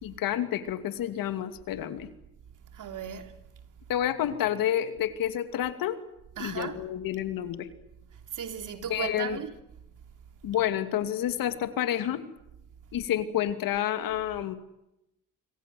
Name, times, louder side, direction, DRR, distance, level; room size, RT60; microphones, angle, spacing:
voice 1, 0.0-2.1 3.9-6.0 6.4-7.7 8.9-9.4 10.4-12.2 12.9-14.5, left 11 dB, 70° left, 2.6 m, -29 dB
voice 2, 2.7-3.3 6.4-6.8 8.3-9.5, right 8 dB, 60° right, 3.3 m, -36 dB
27.0 x 24.5 x 7.8 m
supercardioid pair, 65°, 35 cm